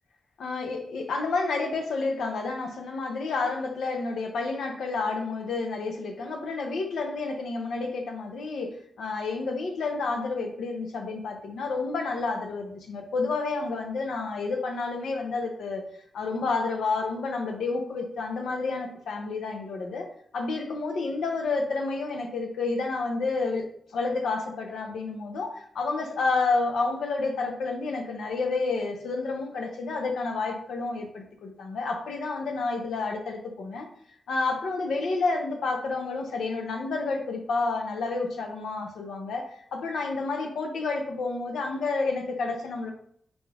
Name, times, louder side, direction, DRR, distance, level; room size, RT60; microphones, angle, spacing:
voice 1, 0.4-15.8 16.1-20.0 20.3-23.7 23.9-33.9 34.3-42.9, left 3 dB, 85° left, 3 dB, 0.6 m, -30 dB
3.8 x 2.4 x 3.3 m, 0.64 s
cardioid pair, 60°, 0 cm